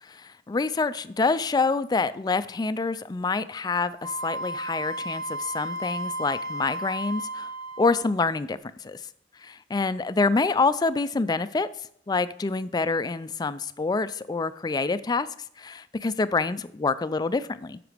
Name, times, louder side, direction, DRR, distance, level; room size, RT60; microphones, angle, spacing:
voice 1, 0.0-7.5 7.8-9.0 9.4-15.3 15.6-17.8, left 3 dB, 20° left, 0.3 m, -27 dB
Wind instrument woodwind instrument, 4.0-8.2, right 1 dB, 85° right, 1.2 m, -33 dB
8.1 x 5.9 x 4.9 m
head